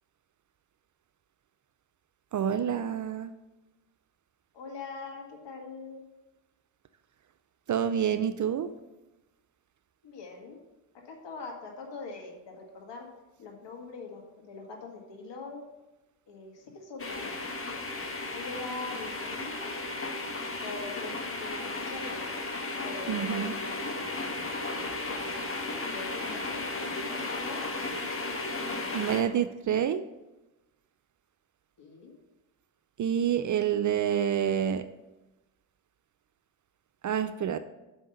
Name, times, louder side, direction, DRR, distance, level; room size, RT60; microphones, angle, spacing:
voice 1, 2.3-3.3 7.7-8.7 23.1-23.5 28.9-30.1 33.0-34.9 37.0-37.6, right 9 dB, 40° right, 12 dB, 0.5 m, -28 dB
voice 2, 4.5-6.0 10.0-10.6 11.0-13.1 13.4-15.6 16.3-17.5 18.3-19.7 20.6-22.4 22.8-23.9 24.4-25.2 25.9-27.7 31.8-32.2, left 4 dB, 55° left, 1 dB, 2.0 m, -43 dB
sound 1, 17.0-29.2, left 2 dB, 25° left, 1.3 m, -35 dB
6.2 x 5.5 x 6.6 m, 1.0 s
hypercardioid pair, 45°, 50 cm